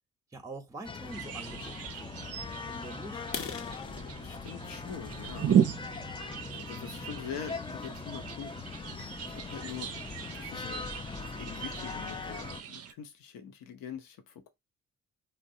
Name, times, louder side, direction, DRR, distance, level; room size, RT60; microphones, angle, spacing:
voice 1, 0.3-3.3, right 2 dB, 10° right, 0.7 m, -45 dB
sound 1, 0.8-12.6, left 5 dB, 15° left, 0.3 m, -41 dB
sound 2, 1.1-12.9, right 9 dB, 45° right, 0.5 m, -35 dB
sound 3, 3.2-7.0 7.5-7.7 8.2-8.3 8.7-8.9 9.2-9.3 9.7-9.8 10.0-10.5, left 6 dB, 40° left, 0.7 m, -44 dB
voice 2, 4.1-5.6 6.5-8.5 9.2-9.9 10.3-10.9 11.2-14.5, left 7 dB, 75° left, 0.8 m, -44 dB
3.2 x 2.3 x 2.7 m
hypercardioid pair, 45°, 35 cm